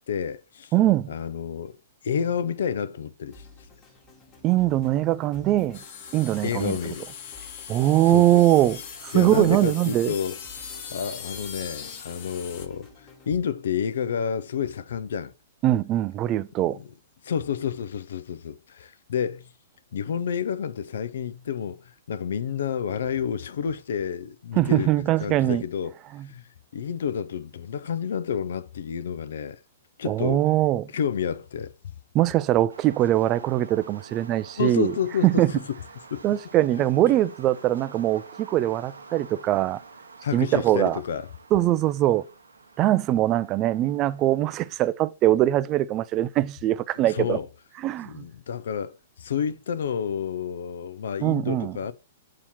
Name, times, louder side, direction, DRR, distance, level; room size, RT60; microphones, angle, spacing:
voice 1, 0.1-0.7 1.1-1.8 2.0-3.4 6.4-7.0 8.1-8.4 9.1-10.4 10.9-15.3 16.7-16.9 17.2-19.5 19.9-25.9 26.3-26.4 26.7-29.6 30.0-30.4 30.9-31.7 34.6-35.4 36.1-36.2 36.8-36.9 40.2-41.3 47.1-47.5 48.0-51.9, left 7 dB, 65° left, 0.5 m, -29 dB
voice 2, 0.7-1.1 4.4-5.8 6.1-6.8 7.7-10.1 15.6-16.8 24.6-25.6 26.1-26.3 30.0-30.9 32.1-34.9 35.2-35.5 36.2-39.8 40.3-41.0 41.5-42.3 42.8-47.4 47.8-48.2 51.2-51.8, right 14 dB, 30° right, 0.3 m, -22 dB
sound 1, 3.3-13.3, left 3 dB, 25° left, 1.4 m, -51 dB
sound 2, 5.7-12.7, left 7 dB, 45° left, 1.0 m, -40 dB
sound 3, 32.7-44.8, right 4 dB, 85° right, 0.8 m, -48 dB
7.0 x 2.8 x 5.8 m
figure-of-eight pair, 115°, 0 cm